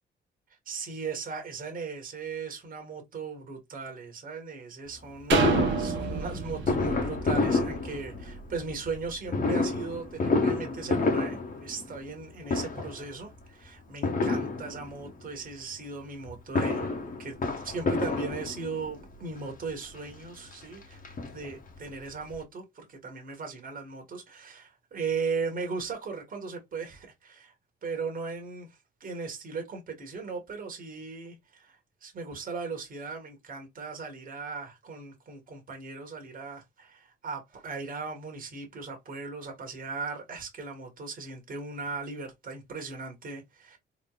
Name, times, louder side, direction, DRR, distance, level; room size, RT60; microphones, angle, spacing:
voice 1, 0.6-17.4 17.6-21.0 21.3-27.5 27.8-43.8, right 4 dB, 45° right, 1.5 m, -38 dB
Fireworks, 5.3-8.5 9.3-12.2 12.5-13.1 14.0-15.1 16.3-18.9 19.7-19.8 20.1-20.2 20.5-21.8 22.1-22.2 22.3-22.4, left 3 dB, 45° left, 1.2 m, -29 dB
sound 1, 5.3-9.1 9.6-9.7, right 6 dB, 70° right, 1.1 m, -31 dB
3.9 x 3.1 x 2.3 m
cardioid pair, 85°, 20 cm